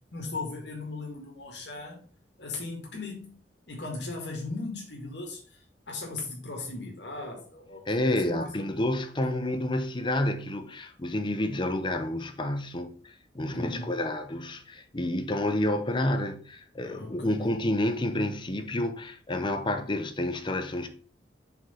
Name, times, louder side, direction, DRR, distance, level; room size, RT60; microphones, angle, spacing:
voice 1, 0.1-2.0 2.4-3.4 3.7-8.7 13.5-14.0 16.9-17.6, left 3 dB, 75° left, 1.8 m, -38 dB
voice 2, 7.9-20.9, left 1 dB, 30° left, 0.7 m, -29 dB
5.9 x 3.9 x 5.5 m
head